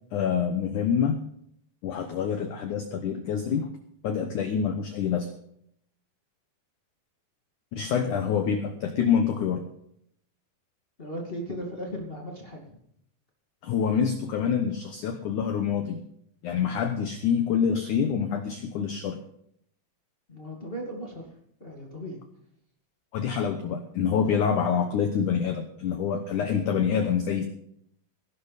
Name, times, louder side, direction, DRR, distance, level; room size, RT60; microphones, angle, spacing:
voice 1, 0.1-1.3 1.8-3.7 4.0-5.3 7.7-9.6 13.6-16.0 16.4-19.2 23.1-27.4, left 7 dB, 85° left, 7 dB, 1.7 m, -26 dB
voice 2, 11.0-12.8 20.3-21.2 21.6-22.2, equal, 30° left, 0 dB, 1.0 m, -37 dB
19.0 x 11.5 x 4.1 m, 0.69 s
omnidirectional pair, 5.1 m